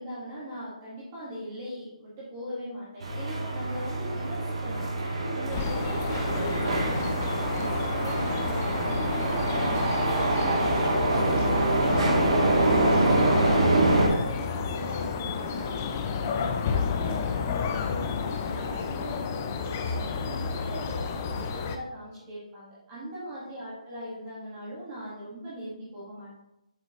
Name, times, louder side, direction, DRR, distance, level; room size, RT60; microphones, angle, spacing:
voice 1, 0.0-15.8 16.1-26.3, equal, 15° right, -8 dB, 1.6 m, -40 dB
sound 1, 3.0-14.1, right 2 dB, 55° right, 1.8 m, -25 dB
sound 2, 5.5-21.8, left 5 dB, 15° left, 0.3 m, -31 dB
7.7 x 5.9 x 3.0 m, 0.87 s
hypercardioid pair, 175°, 4 cm